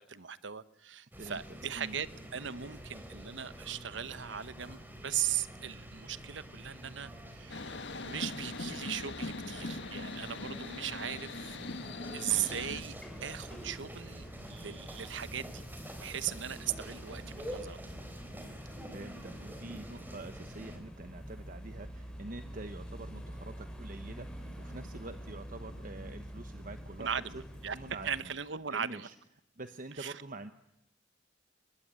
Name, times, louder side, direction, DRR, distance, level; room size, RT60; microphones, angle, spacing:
voice 1, 0.1-7.8 8.0-11.6 12.1-12.9 13.2-15.6 16.0-17.8 27.0-27.8 28.0-29.1 30.0-30.1, right 9 dB, 85° right, 1.0 m, -38 dB
sound 1, 1.1-20.8, equal, 10° right, 3.9 m, -47 dB
sound 2, 7.5-12.8, left 3 dB, 70° left, 1.6 m, -41 dB
sound 3, 12.2-28.2, equal, 5° left, 5.3 m, -47 dB
voice 2, 18.9-27.1 27.3-27.4 27.7-28.3 28.7-29.1 29.6-30.5, right 2 dB, 45° right, 1.1 m, -46 dB
24.5 x 21.0 x 8.8 m
head